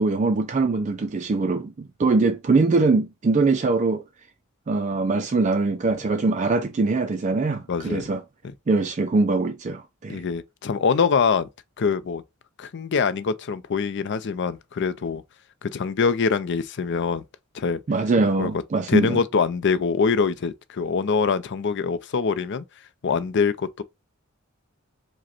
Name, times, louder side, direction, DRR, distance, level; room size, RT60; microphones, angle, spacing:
voice 1, 0.0-4.0 4.7-8.2 8.7-10.2 17.9-19.2, right 3 dB, 35° right, 0.4 m, -22 dB
voice 2, 7.7-8.1 8.4-8.5 10.1-11.5 11.8-12.2 12.6-15.2 15.6-17.2 17.5-17.8 18.4-18.5 18.9-22.6 23.0-23.8, left 5 dB, 55° left, 0.5 m, -24 dB
5.0 x 2.2 x 4.2 m
head